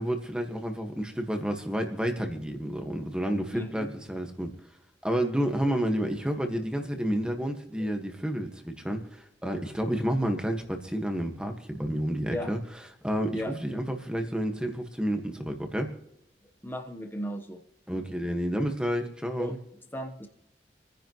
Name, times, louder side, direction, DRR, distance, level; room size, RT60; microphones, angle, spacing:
voice 1, 0.0-4.5 5.0-12.6 13.0-15.9 17.9-19.6, equal, 5° right, 5 dB, 1.6 m, -30 dB
voice 2, 3.5-3.9 7.8-7.9 12.3-12.5 13.3-13.5 16.6-17.6 19.4-19.6 19.9-20.3, equal, 10° left, 5 dB, 1.1 m, -35 dB
27.5 x 10.5 x 3.1 m, 0.82 s
head